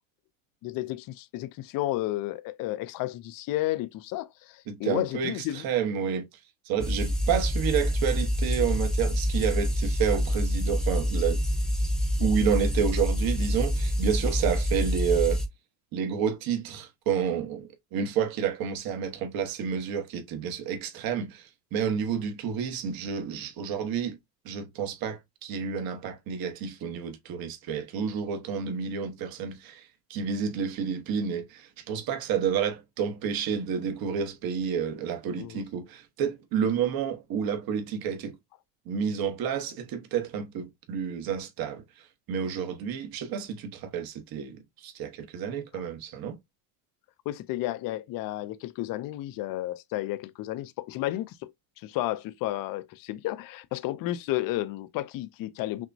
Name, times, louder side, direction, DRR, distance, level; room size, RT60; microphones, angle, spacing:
voice 1, 0.6-5.6 35.3-35.6 45.7-45.8 47.3-51.5 51.8-55.9, left 15 dB, 50° left, 0.6 m, -32 dB
voice 2, 4.7-6.3 6.7-11.4 12.2-15.4 15.9-24.2 24.4-29.8 30.1-38.3 38.9-41.8 42.3-46.4, right 7 dB, 50° right, 1.2 m, -30 dB
sound 1, 6.8-15.5, equal, ahead, 0.8 m, -26 dB
6.0 x 2.2 x 2.6 m
supercardioid pair, 110°, 45 cm